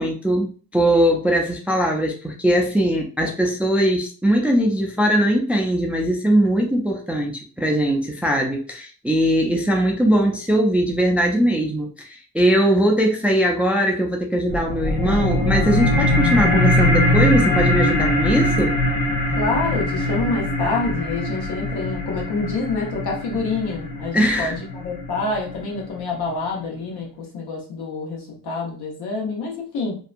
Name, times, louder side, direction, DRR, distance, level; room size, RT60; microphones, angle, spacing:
voice 1, 0.0-18.7 24.1-24.5, equal, 5° right, 1 dB, 0.4 m, -20 dB
sound 1, 14.5-25.5, left 1 dB, 60° left, 0.8 m, -21 dB
voice 2, 19.4-30.0, left 3 dB, 75° left, -2 dB, 1.2 m, -27 dB
2.7 x 2.2 x 2.5 m, 0.38 s
cardioid pair, 105°, 39 cm